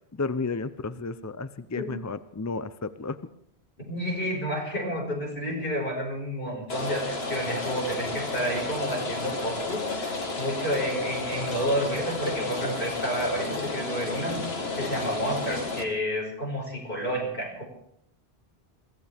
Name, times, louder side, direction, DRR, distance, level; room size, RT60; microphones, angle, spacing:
voice 1, 0.1-3.2, left 3 dB, 25° left, 12 dB, 0.4 m, -32 dB
voice 2, 3.9-14.4 14.8-17.6, equal, 60° left, 0 dB, 5.2 m, -30 dB
Rain, 6.7-15.8, left 3 dB, 75° left, 2.0 m, -32 dB
22.5 x 16.0 x 3.5 m, 0.71 s
omnidirectional pair, 1.1 m